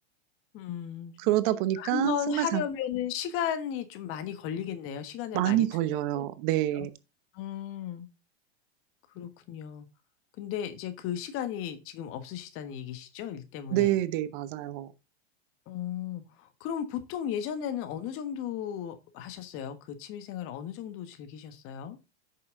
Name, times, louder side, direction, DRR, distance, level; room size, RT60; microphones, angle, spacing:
voice 1, 0.5-1.2 1.8-5.7 6.1-6.3 6.7-6.9 7.3-8.1 9.1-9.9 10.4-13.9 15.7-22.0, left 9 dB, 40° left, 1.5 m, -35 dB
voice 2, 1.2-2.6 5.3-6.9 13.7-14.9, right 14 dB, 50° right, 0.9 m, -27 dB
8.6 x 6.5 x 3.8 m
hypercardioid pair, 120°, 33 cm